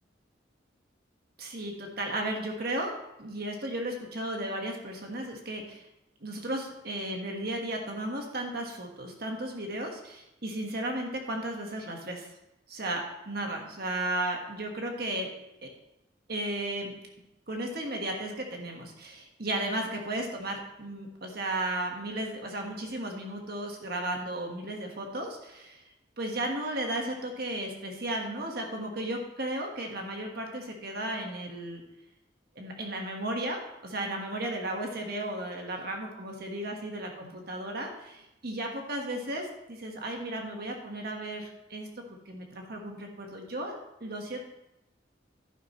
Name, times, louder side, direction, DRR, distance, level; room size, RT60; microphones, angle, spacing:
voice 1, 1.4-5.8 6.2-12.3 12.7-15.3 15.6-15.7 16.3-16.9 17.5-25.8 26.2-31.8 32.5-44.4, right 1 dB, 55° right, 2 dB, 1.5 m, -34 dB
11.5 x 10.0 x 3.1 m, 0.91 s
head